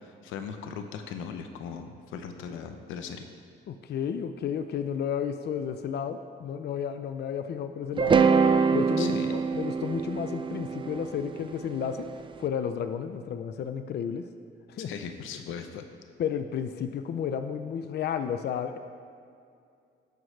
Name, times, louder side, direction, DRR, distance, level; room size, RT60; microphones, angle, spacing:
voice 1, 0.0-3.3 9.0-9.4 14.8-15.8, left 6 dB, 90° left, 7 dB, 0.7 m, -38 dB
voice 2, 3.7-8.2 8.7-12.1 12.4-14.3 14.7-14.9 16.2-18.8, left 8 dB, 55° left, 9 dB, 0.5 m, -32 dB
sound 1, 8.0-12.1, right 5 dB, 25° right, 0.3 m, -24 dB
16.0 x 6.2 x 3.3 m, 2.3 s
cardioid pair, 90°, 20 cm